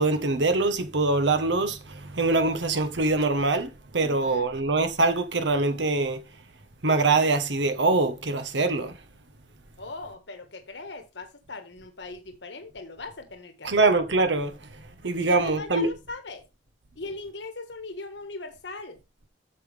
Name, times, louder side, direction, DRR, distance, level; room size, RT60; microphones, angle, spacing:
voice 1, 0.0-6.2 6.8-9.0 13.6-15.9, right 3 dB, 80° right, 1.2 m, -24 dB
voice 2, 4.0-4.4 9.8-13.9 15.2-16.4 16.9-19.0, left 3 dB, 80° left, 1.4 m, -39 dB
8.6 x 7.0 x 3.4 m
head